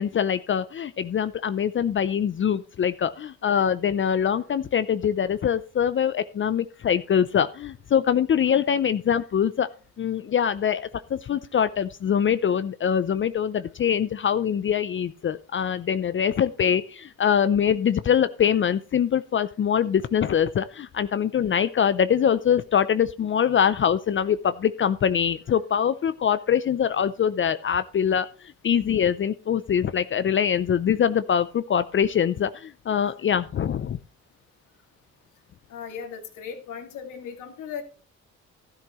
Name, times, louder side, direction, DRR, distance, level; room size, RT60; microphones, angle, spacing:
voice 1, 0.0-9.7 10.0-28.3 28.6-34.0, left 8 dB, 40° left, 13 dB, 0.5 m, -23 dB
voice 2, 35.7-37.8, left 7 dB, 85° left, 4 dB, 2.3 m, -37 dB
13.0 x 11.5 x 3.1 m, 0.38 s
cardioid pair, 90°, 30 cm